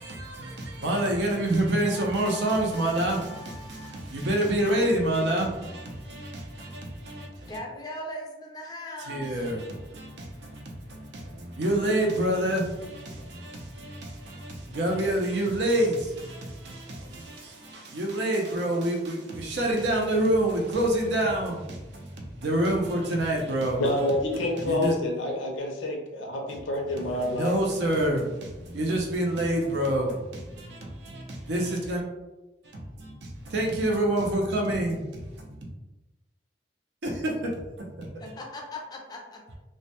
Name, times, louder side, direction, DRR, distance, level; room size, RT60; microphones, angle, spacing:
voice 1, 0.0-7.5 9.1-23.8 24.6-24.9 27.2-32.0 32.7-35.5 37.0-37.5 37.8-38.1, right 1 dB, 65° right, 0.5 m, -27 dB
voice 2, 7.5-9.5 38.2-39.5, left 1 dB, 20° left, 0.3 m, -39 dB
voice 3, 23.8-27.6, left 1 dB, 85° left, 0.5 m, -28 dB
2.1 x 2.1 x 2.8 m
head